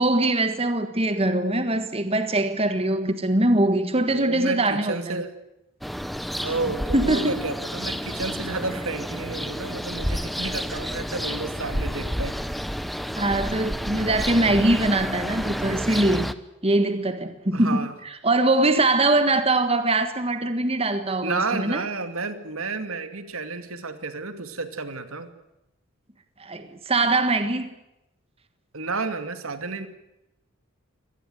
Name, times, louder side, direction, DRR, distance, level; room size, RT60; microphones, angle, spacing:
voice 1, 0.0-5.2 6.9-7.4 13.2-16.3 16.6-17.9 18.2-21.8 26.4-27.7, right 2 dB, 30° right, 1.6 m, -22 dB
voice 2, 4.1-5.3 6.4-12.4 17.5-18.0 21.2-25.3 28.7-29.9, right 3 dB, 80° right, 2.5 m, -31 dB
sound 1, 5.8-16.3, equal, ahead, 0.8 m, -30 dB
25.0 x 19.0 x 8.1 m
head